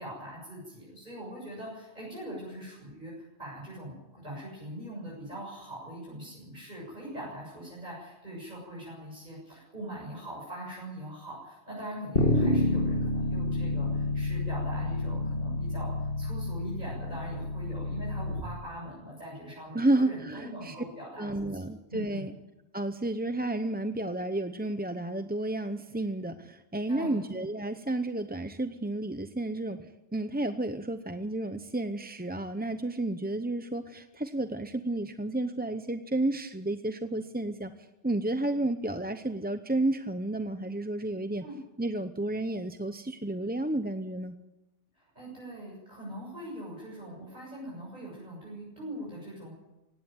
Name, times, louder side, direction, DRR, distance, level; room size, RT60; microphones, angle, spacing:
voice 1, 0.0-22.3 26.9-27.2 41.4-41.6 44.9-49.5, right 1 dB, 40° right, -5 dB, 7.5 m, -42 dB
Bass guitar, 12.2-18.4, left 1 dB, 55° left, 2.7 m, -29 dB
voice 2, 19.7-20.7 21.2-22.3 22.7-41.4 41.8-44.4, right 2 dB, 10° right, 9 dB, 0.6 m, -31 dB
18.5 x 16.5 x 9.2 m, 1.0 s
omnidirectional pair, 1.1 m